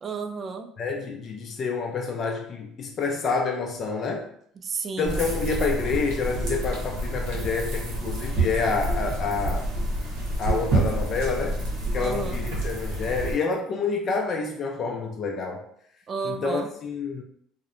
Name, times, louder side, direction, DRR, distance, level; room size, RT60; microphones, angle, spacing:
voice 1, 0.0-0.7 4.6-5.2 12.0-12.4 16.1-16.7, right 5 dB, 40° right, 6 dB, 0.3 m, -32 dB
voice 2, 0.8-4.2 5.0-9.7 10.4-11.6 11.9-15.6 16.2-17.2, left 4 dB, 45° left, 1 dB, 0.4 m, -28 dB
sound 1, 5.0-13.3, right 1 dB, 80° right, 0.9 m, -28 dB
2.7 x 2.1 x 2.5 m, 0.68 s
supercardioid pair, 80°, 0 cm